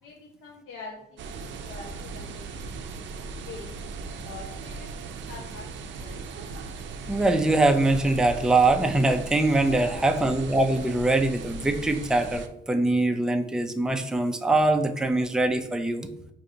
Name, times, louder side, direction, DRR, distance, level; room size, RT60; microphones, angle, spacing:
voice 1, 0.0-1.0 1.4-3.7 4.2-6.2 9.6-10.1, left 3 dB, 90° left, -2 dB, 0.7 m, -45 dB
sound 1, 1.2-12.5, right 4 dB, 65° right, 0.5 m, -38 dB
voice 2, 7.1-16.1, right 2 dB, 5° right, 5 dB, 0.4 m, -23 dB
4.8 x 2.6 x 2.6 m, 0.79 s
cardioid pair, 90°, 20 cm